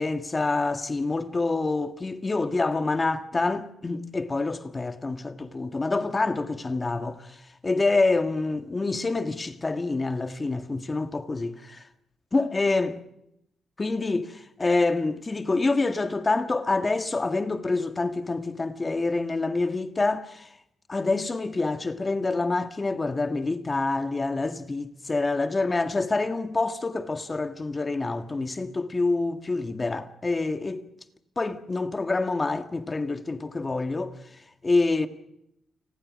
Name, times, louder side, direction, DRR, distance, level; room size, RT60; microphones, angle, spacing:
voice 1, 0.0-11.8 12.3-13.0 13.8-20.5 20.9-30.9 31.4-34.2 34.6-35.1, left 3 dB, 25° left, 1.7 m, -27 dB
29.5 x 20.0 x 6.4 m
cardioid pair, 100°, 0 cm